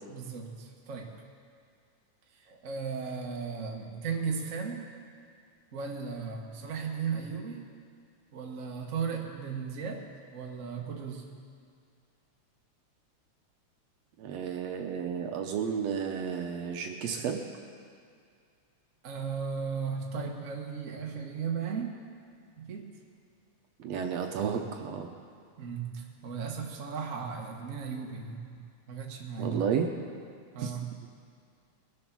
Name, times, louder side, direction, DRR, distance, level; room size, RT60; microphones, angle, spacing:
voice 1, 0.1-1.2 2.3-4.9 5.7-7.7 8.3-11.3 19.0-22.0 22.6-22.9 25.6-28.5 28.9-29.6 30.5-30.9, right 6 dB, 45° right, 0 dB, 1.1 m, -36 dB
voice 2, 14.2-17.4 23.8-25.1 29.4-29.9 30.6-30.7, right 7 dB, 70° right, 3 dB, 1.8 m, -32 dB
21.5 x 7.4 x 6.0 m, 2.3 s
omnidirectional pair, 3.4 m